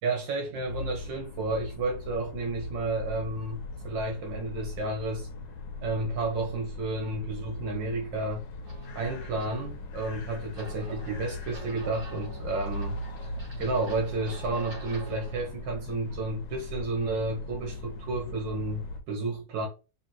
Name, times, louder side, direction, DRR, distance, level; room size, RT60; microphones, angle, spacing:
voice 1, 0.0-5.3 5.8-8.4 9.0-13.3 13.6-19.7, right 2 dB, 85° right, 1.8 m, -31 dB
sound 1, 0.7-19.0, left 2 dB, 90° left, 1.5 m, -39 dB
sound 2, 8.6-15.5, right 3 dB, 55° right, 2.4 m, -48 dB
5.0 x 2.9 x 3.1 m
omnidirectional pair, 1.9 m